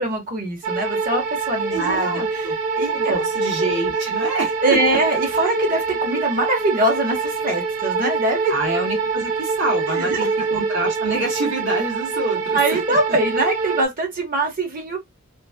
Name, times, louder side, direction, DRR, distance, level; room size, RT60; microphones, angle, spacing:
voice 1, 0.0-2.4 2.8-3.3 4.6-8.5 9.9-10.3 12.5-15.0, right 2 dB, 45° right, 1.0 m, -23 dB
sound 1, 0.6-13.9, right 4 dB, 85° right, 0.5 m, -25 dB
voice 2, 1.7-2.5 2.9-5.0 5.3-5.5 8.5-13.0, right 2 dB, 65° right, 1.3 m, -27 dB
3.1 x 2.5 x 2.2 m
head